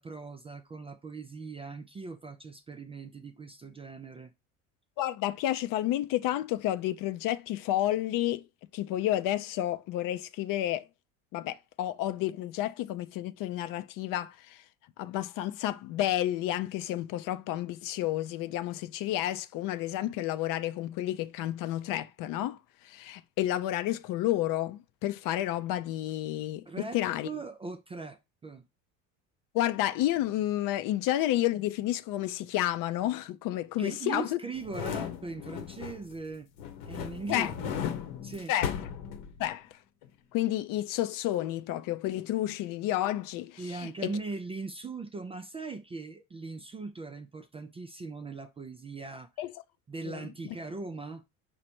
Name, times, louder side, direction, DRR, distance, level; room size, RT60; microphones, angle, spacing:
voice 1, 0.0-4.3 26.7-27.0 27.2-28.6 33.8-36.5 36.9-37.8 38.2-38.5 43.6-49.3 49.9-51.2, right 3 dB, 15° right, 0.3 m, -40 dB
voice 2, 5.0-8.4 8.7-10.8 11.3-14.6 15.0-22.6 22.8-26.6 26.9-27.3 29.5-34.4 37.3-37.5 38.5-38.7 39.4-39.7 40.3-44.1 49.4-49.5 50.1-50.2, left 13 dB, 55° left, 0.5 m, -30 dB
sound 1, 34.6-36.2 36.6-39.7 40.0-40.1, left 8 dB, 75° left, 0.9 m, -36 dB
5.0 x 2.1 x 4.3 m
supercardioid pair, 100°, 39 cm